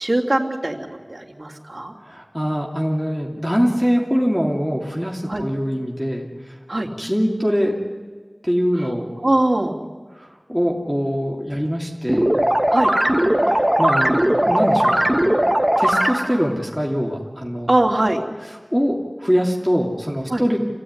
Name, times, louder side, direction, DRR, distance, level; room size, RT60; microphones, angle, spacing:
voice 1, 0.0-1.9 5.3-5.4 6.7-6.9 8.8-8.9 9.2-9.8 12.7-12.9 17.7-18.2 20.3-20.4, right 1 dB, 55° right, -1 dB, 3.2 m, -21 dB
voice 2, 2.1-6.3 7.0-7.8 8.4-9.1 10.5-12.3 13.5-14.2 14.5-15.0 15.8-17.7 18.7-20.6, equal, 5° left, -1 dB, 3.0 m, -22 dB
sound 1, 12.1-16.5, right 1 dB, 20° right, 1.4 m, -18 dB
27.5 x 16.5 x 9.8 m, 1.4 s
wide cardioid pair, 40°, 0 cm